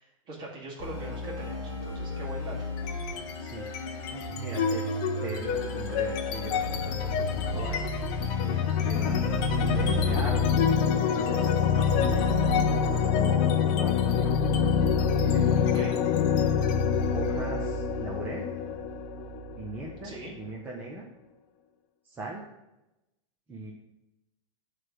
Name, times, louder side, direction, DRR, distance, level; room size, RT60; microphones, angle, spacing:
voice 1, 0.0-2.6 15.7-16.0 20.0-20.3, right 2 dB, 25° right, -3 dB, 2.0 m, -41 dB
sound 1, 0.8-10.1, left 1 dB, 20° left, 2.6 m, -35 dB
sound 2, 2.8-3.3 3.7-20.3, left 6 dB, 35° left, 0.6 m, -26 dB
voice 2, 3.4-4.9 5.2-7.8 8.4-9.2 9.6-10.7 11.0-12.3 13.1-14.3 15.2-15.9 17.1-18.5 19.6-21.0 22.0-22.4 23.5-23.7, right 2 dB, 10° right, -3 dB, 0.7 m, -39 dB
9.5 x 3.3 x 6.2 m, 0.94 s
supercardioid pair, 160°, 17 cm